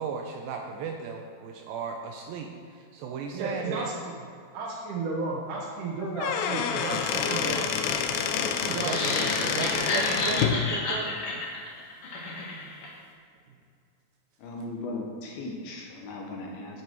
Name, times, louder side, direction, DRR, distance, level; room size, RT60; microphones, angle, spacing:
voice 1, 0.0-3.9 8.7-9.0 9.4-11.2, right 5 dB, 85° right, 2 dB, 2.1 m, -35 dB
voice 2, 3.3-4.2 4.5-7.6 8.6-9.1, right 3 dB, 70° right, -2 dB, 2.1 m, -33 dB
Squeak / Wood, 6.0-10.6, left 7 dB, 90° left, 2.8 m, -28 dB
sound 1, 8.7-12.9, left 2 dB, 50° left, 1.9 m, -31 dB
voice 3, 14.4-16.8, left 2 dB, 70° left, 0 dB, 2.8 m, -37 dB
9.6 x 8.7 x 4.6 m, 2.3 s
omnidirectional pair, 4.8 m